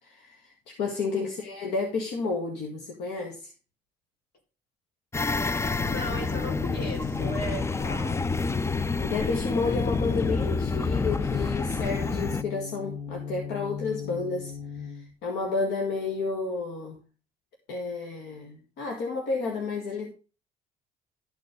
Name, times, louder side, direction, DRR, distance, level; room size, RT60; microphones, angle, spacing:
voice 1, 0.0-3.5 9.0-17.0 17.7-20.1, left 4 dB, 90° left, 2.1 m, -31 dB
sound 1, 5.1-12.4, left 4 dB, 15° left, 0.4 m, -28 dB
voice 2, 5.8-8.3, equal, 70° left, 4.6 m, -36 dB
sound 2, 5.8-15.1, left 7 dB, 50° left, 0.9 m, -39 dB
13.0 x 4.8 x 5.2 m
cardioid pair, 110°, 17 cm